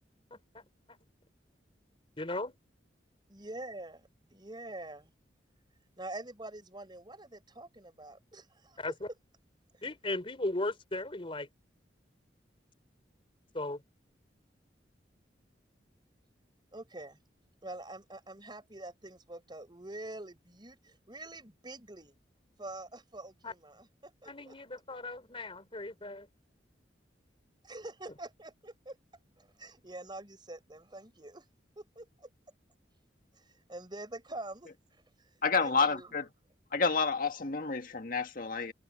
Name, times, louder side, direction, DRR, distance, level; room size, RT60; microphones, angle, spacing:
voice 1, 0.3-0.6 2.2-2.5 8.8-9.1 9.8-11.5 13.5-13.8 23.4-23.5 24.3-26.3, left 2 dB, 30° left, 3.7 m, -37 dB
voice 2, 3.3-5.1 6.0-8.8 16.7-17.2 17.6-22.1 22.6-24.6 27.6-29.0 29.4-31.5 31.8-32.3 33.3-34.7 35.6-36.1, right 2 dB, 25° right, 5.2 m, -45 dB
voice 3, 35.4-36.3 36.7-38.7, left 4 dB, 50° left, 1.7 m, -29 dB
head